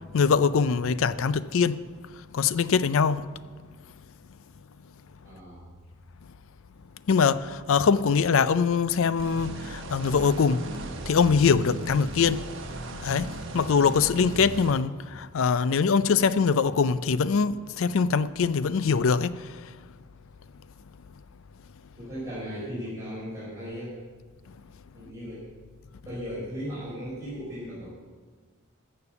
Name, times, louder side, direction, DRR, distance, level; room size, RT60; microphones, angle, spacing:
voice 1, 0.1-1.8 2.3-3.2 7.1-10.6 11.1-12.4 13.0-19.4, left 5 dB, 65° left, 0.4 m, -23 dB
voice 2, 5.2-5.7 22.0-24.0 24.9-25.5 26.0-27.9, equal, 15° right, 4.6 m, -37 dB
sound 1, 9.2-14.7, right 1 dB, 60° right, 1.2 m, -37 dB
13.5 x 6.7 x 7.1 m
head